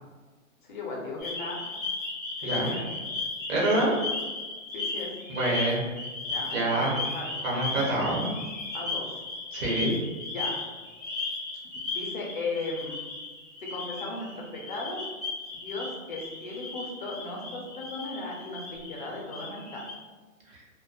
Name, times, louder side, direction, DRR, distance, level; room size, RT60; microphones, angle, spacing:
voice 1, 0.6-1.6 2.4-2.9 4.7-5.1 6.3-7.3 8.7-9.1 10.3-10.6 11.9-13.1 13.6-15.0 15.5-19.8, left 2 dB, 40° left, -2 dB, 0.4 m, -36 dB
sound 1, 1.2-19.9, left 3 dB, ahead, 0.6 m, -36 dB
voice 2, 2.4-2.8 3.5-3.9 5.3-5.8 6.5-7.0 7.4-8.3 9.5-9.9 20.5-20.6, right 1 dB, 70° right, -3 dB, 1.1 m, -26 dB
2.6 x 2.1 x 2.3 m, 1.3 s
hypercardioid pair, 150°, 41 cm